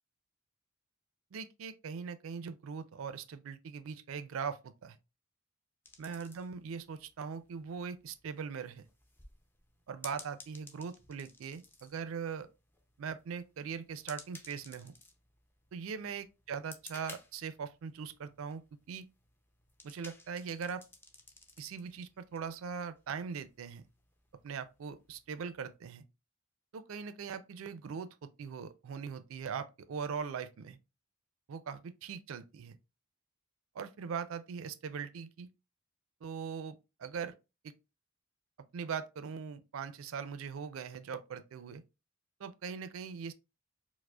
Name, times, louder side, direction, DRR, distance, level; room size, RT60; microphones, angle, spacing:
voice 1, 1.3-5.0 6.0-8.9 9.9-12.5 13.0-14.9 15.7-19.0 19.8-20.8 21.6-23.8 24.4-26.1 26.7-30.8 31.5-32.8 33.7-35.5 36.2-37.3 37.6-37.7 38.7-41.8 42.4-43.3, right 6 dB, 75° right, 0.4 m, -41 dB
sound 1, 5.9-25.8, left 2 dB, 10° left, 0.4 m, -57 dB
4.7 x 2.0 x 2.2 m
head